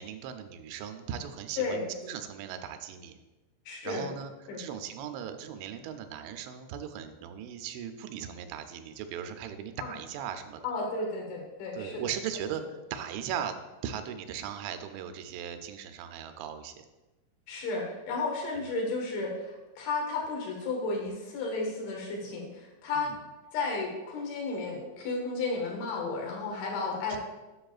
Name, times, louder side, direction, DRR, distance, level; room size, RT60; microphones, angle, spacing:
voice 1, 0.0-3.2 3.8-4.3 4.6-10.6 11.7-12.6 12.9-13.6 13.8-16.9 18.5-18.6 23.0-23.2 27.1-27.2, right 9 dB, 90° right, 8 dB, 3.0 m, -38 dB
voice 2, 3.7-4.1 4.5-4.6 9.8-9.9 10.6-12.0 17.5-23.1 23.5-27.2, left 3 dB, 85° left, -1 dB, 3.9 m, -33 dB
10.0 x 6.7 x 2.4 m, 1.1 s
omnidirectional pair, 5.2 m